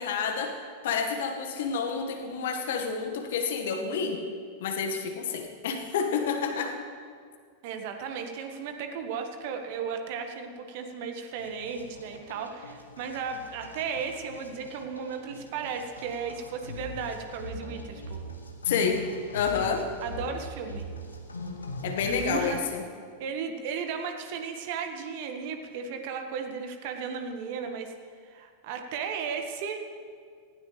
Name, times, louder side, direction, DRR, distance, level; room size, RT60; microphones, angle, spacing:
voice 1, 0.0-4.2 4.6-6.7 18.7-19.0 19.3-19.9 21.8-22.8, left 6 dB, 55° left, 4 dB, 1.8 m, -29 dB
voice 2, 7.6-18.2 20.0-20.9 22.0-22.6 23.2-27.9 28.2-29.9, right 6 dB, 50° right, 5 dB, 1.6 m, -35 dB
sound 1, 11.4-22.6, left 2 dB, 80° left, 1.6 m, -42 dB
19.0 x 16.0 x 3.4 m, 2.1 s
figure-of-eight pair, 90°, 0 cm